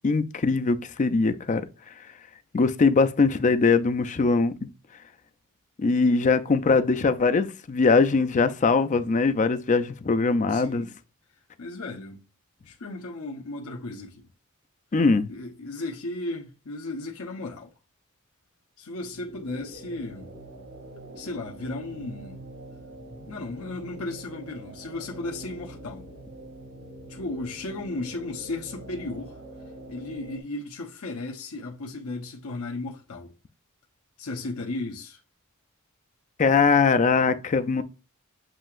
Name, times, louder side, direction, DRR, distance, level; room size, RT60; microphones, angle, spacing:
voice 1, 0.0-1.6 2.5-4.7 5.8-10.9 14.9-15.3 36.4-37.8, left 4 dB, 35° left, 0.4 m, -21 dB
voice 2, 10.4-10.9 11.6-12.2 12.6-14.3 15.3-17.7 18.8-20.3 21.2-22.4 23.3-26.1 27.0-29.4 29.9-33.3 34.2-35.2, left 2 dB, 85° left, 0.9 m, -35 dB
sound 1, 18.9-30.4, right 1 dB, 65° right, 2.2 m, -44 dB
7.5 x 2.8 x 2.5 m
head